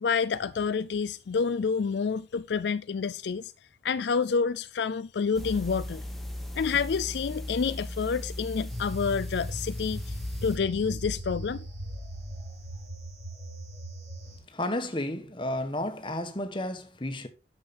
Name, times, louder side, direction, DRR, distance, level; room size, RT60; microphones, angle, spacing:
voice 1, 0.0-3.5 3.8-6.0 6.6-10.0 10.4-11.6, left 5 dB, 70° left, 0.4 m, -28 dB
sound 1, 5.3-10.6, left 1 dB, ahead, 1.3 m, -37 dB
sound 2, 8.7-14.4, equal, 55° right, 5.2 m, -39 dB
voice 2, 14.5-17.3, left 1 dB, 25° left, 1.2 m, -32 dB
10.5 x 6.7 x 4.2 m
head